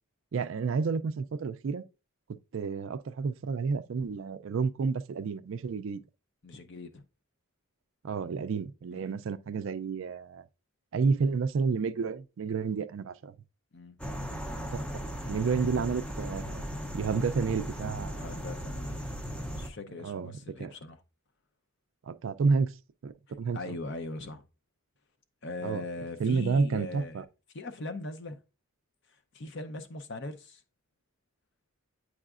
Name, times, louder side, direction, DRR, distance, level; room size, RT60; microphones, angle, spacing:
voice 1, 0.3-1.8 2.5-6.0 8.0-10.4 10.9-13.3 14.7-14.8 15.3-16.6 16.9-18.3 20.0-20.3 20.6-20.7 22.0-22.7 23.0-23.6 25.6-25.8 26.2-27.2, right 5 dB, 60° right, 0.4 m, -30 dB
voice 2, 6.4-7.0 8.9-9.2 13.7-14.0 18.2-19.2 19.6-21.0 23.3-24.4 25.4-27.2 27.5-28.4 29.1-30.6, left 2 dB, 50° left, 0.6 m, -40 dB
sound 1, 14.0-19.7, equal, 5° left, 0.5 m, -37 dB
8.9 x 4.8 x 2.4 m
head